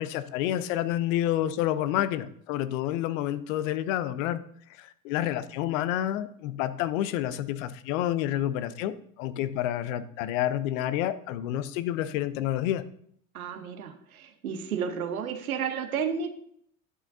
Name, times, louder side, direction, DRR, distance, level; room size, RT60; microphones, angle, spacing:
voice 1, 0.0-4.4 4.8-12.8, left 12 dB, 65° left, 14 dB, 0.8 m, -29 dB
voice 2, 13.3-16.3, right 7 dB, 85° right, 8 dB, 1.1 m, -32 dB
11.0 x 8.2 x 2.7 m, 0.66 s
hypercardioid pair, 75°, 42 cm